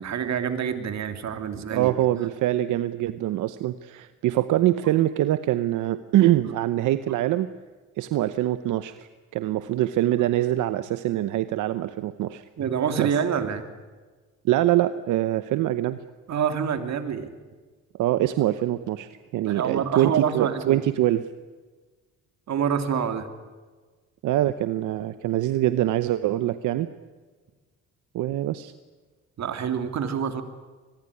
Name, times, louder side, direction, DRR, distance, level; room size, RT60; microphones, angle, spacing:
voice 1, 0.0-1.9 12.6-13.6 16.3-17.3 19.4-20.8 22.5-23.3 29.4-30.4, right 7 dB, 65° right, 8 dB, 2.9 m, -27 dB
voice 2, 1.7-7.5 8.0-12.4 13.0-13.1 14.4-16.0 18.0-21.2 24.2-26.9 28.1-28.7, right 14 dB, 85° right, 12 dB, 0.9 m, -24 dB
25.0 x 21.0 x 9.8 m, 1.4 s
cardioid pair, 90°, 30 cm